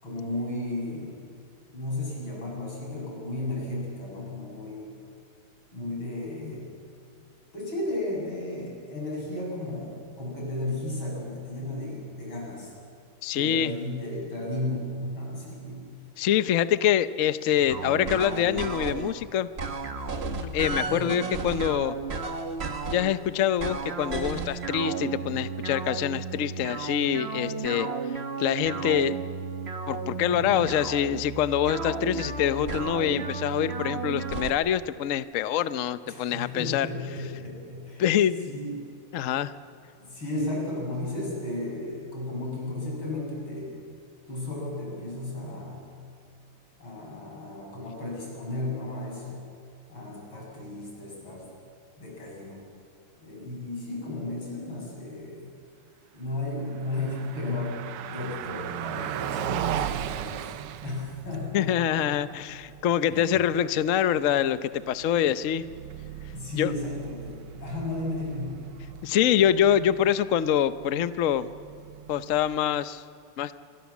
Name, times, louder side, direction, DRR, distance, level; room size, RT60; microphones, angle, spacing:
voice 1, 0.0-1.2 1.7-4.9 5.7-6.8 7.5-12.7 13.3-16.0 20.7-21.2 30.3-30.7 36.1-38.1 38.5-38.9 40.0-43.7 44.3-45.9 46.8-49.4 49.9-51.5 52.0-52.6 53.2-55.5 56.1-60.5 60.8-62.3 63.1-63.4 66.3-68.8, left 2 dB, 65° left, -2 dB, 8.4 m, -34 dB
voice 2, 13.2-13.7 16.2-19.5 20.5-22.0 22.9-27.9 28.4-29.2 29.9-36.9 38.0-38.5 39.1-39.5 61.5-65.6 66.6-66.7 69.0-71.5 72.1-73.0 73.4-73.5, left 10 dB, 80° left, 13 dB, 0.7 m, -25 dB
sound 1, 17.7-19.1 19.6-23.2 23.6-34.5, right 4 dB, 35° right, 1.1 m, -33 dB
Car passing by, 56.7-72.8, right 10 dB, 85° right, 1.8 m, -38 dB
28.0 x 24.0 x 7.3 m, 2.4 s
omnidirectional pair, 2.4 m